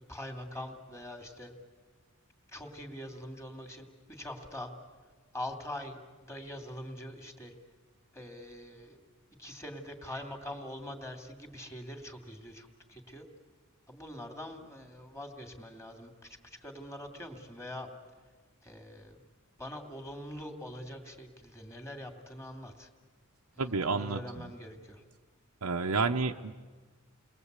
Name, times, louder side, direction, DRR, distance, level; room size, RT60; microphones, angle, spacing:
voice 1, 0.1-1.5 2.5-4.7 5.3-7.5 8.1-9.0 9.4-13.3 13.9-17.9 18.6-19.2 19.6-22.9 23.6-25.0, left 1 dB, 15° left, 4 dB, 2.7 m, -43 dB
voice 2, 23.6-24.5 25.6-26.6, right 4 dB, 90° right, 3 dB, 0.9 m, -31 dB
30.0 x 21.0 x 8.2 m, 1.4 s
head